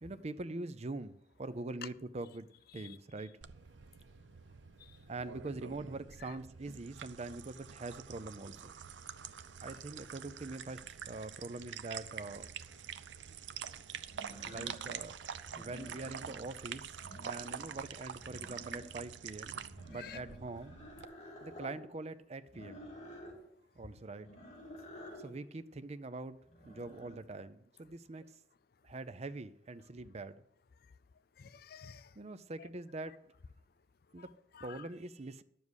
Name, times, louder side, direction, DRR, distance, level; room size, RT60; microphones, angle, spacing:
voice 1, 0.0-2.5 2.7-3.4 5.1-8.8 9.6-12.5 14.4-15.2 15.6-19.6 19.9-20.8 21.4-22.9 23.8-24.3 25.2-26.4 26.7-28.3 28.8-30.4 32.2-33.3 34.1-34.3 34.6-35.4, right 2 dB, 35° right, 0.5 m, -44 dB
sound 1, 3.4-21.1, right 8 dB, 85° right, 0.5 m, -46 dB
sound 2, 12.7-12.8 14.1-15.0 15.4-16.5 16.8-17.8 18.1-19.1 19.7-21.8 22.5-23.4 24.2-25.3 26.5-27.2, equal, 40° left, 3.6 m, -51 dB
voice 2, 31.4-32.1 32.6-32.7 34.2-34.9, left 8 dB, 55° left, 0.5 m, -52 dB
11.0 x 7.3 x 6.4 m
head